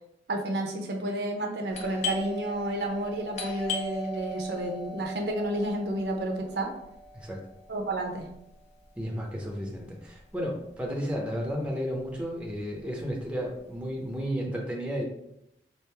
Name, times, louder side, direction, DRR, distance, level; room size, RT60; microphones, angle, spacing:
voice 1, 0.3-6.7 7.7-8.3, right 1 dB, 70° right, 2 dB, 0.7 m, -31 dB
Doorbell, 1.7-11.1 11.3-11.4 12.1-12.4 12.7-14.1, left 2 dB, 40° left, 0.6 m, -39 dB
voice 2, 9.0-15.0, equal, 5° right, -1 dB, 0.6 m, -33 dB
3.5 x 2.5 x 4.5 m, 0.80 s
head